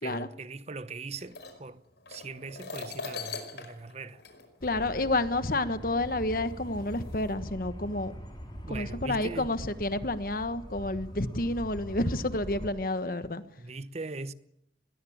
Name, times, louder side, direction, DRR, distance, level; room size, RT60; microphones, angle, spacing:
voice 1, 0.0-1.8 2.1-4.2 8.6-9.5 13.6-14.3, right 3 dB, 40° right, 0.9 m, -40 dB
sound 1, 1.1-5.2 6.1-6.2 6.9-7.3, left 4 dB, 75° left, 5.2 m, -41 dB
voice 2, 4.6-8.1 8.7-13.4, left 2 dB, 55° left, 1.3 m, -30 dB
sound 2, 4.6-12.7, equal, 25° left, 4.6 m, -43 dB
21.5 x 21.0 x 8.8 m
head